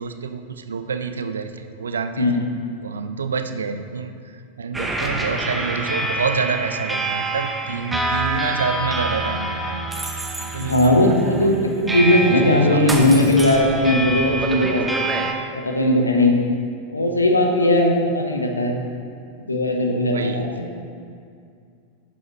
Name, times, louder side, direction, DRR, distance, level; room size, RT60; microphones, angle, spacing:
voice 1, 0.0-2.3 2.8-9.9 10.4-11.5 12.1-13.2 20.1-20.6, right 5 dB, 70° right, 8 dB, 0.5 m, -28 dB
voice 2, 2.2-2.6 10.6-14.8 15.6-16.3 16.9-18.8 19.5-20.5, left 1 dB, 80° left, 2 dB, 1.0 m, -18 dB
sound 1, 4.7-15.3, right 2 dB, 10° right, 0.9 m, -26 dB
11.0 x 7.1 x 3.1 m, 2.3 s
figure-of-eight pair, 90°, 0 cm